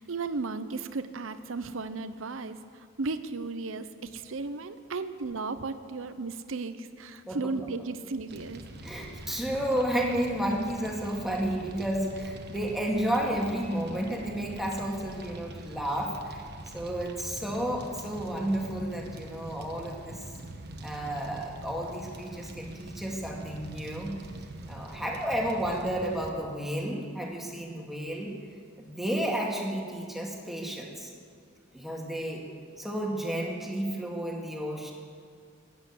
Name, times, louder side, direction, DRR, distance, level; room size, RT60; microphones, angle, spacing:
voice 1, 0.0-8.6 9.3-9.4, right 3 dB, 70° right, 11 dB, 0.8 m, -35 dB
Fire, 8.3-26.3, right 1 dB, 55° right, 1.3 m, -44 dB
voice 2, 8.8-16.4 16.7-20.2 20.8-24.2 24.7-28.4 28.8-31.1 31.7-32.5 32.8-34.9, right 1 dB, ahead, -1 dB, 2.1 m, -32 dB
16.0 x 10.5 x 8.5 m, 2.2 s
head